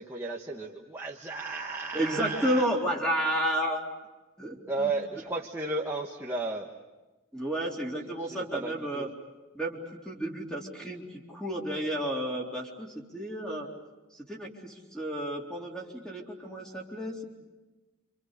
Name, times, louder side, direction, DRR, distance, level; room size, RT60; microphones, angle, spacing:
voice 1, 0.0-2.7 4.7-6.7 8.2-9.1, right 3 dB, 10° right, -2 dB, 1.4 m, -34 dB
voice 2, 1.9-3.8 4.4-4.9 7.3-9.1 9.5-13.7 14.1-17.3, right 1 dB, 5° left, -1 dB, 3.7 m, -32 dB
29.0 x 27.0 x 6.7 m, 1.1 s
head